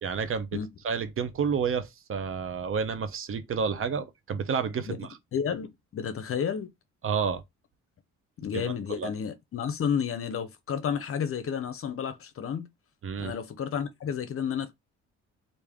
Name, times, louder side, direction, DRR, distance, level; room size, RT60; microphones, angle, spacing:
voice 1, 0.0-0.6 0.8-5.1 7.0-7.4 8.5-9.1 13.0-13.3, right 6 dB, 45° right, 0.7 m, -30 dB
voice 2, 5.3-6.7 8.4-12.7 13.2-14.7, left 7 dB, 45° left, 0.7 m, -31 dB
3.3 x 2.6 x 3.5 m
cardioid pair, 90°, 30 cm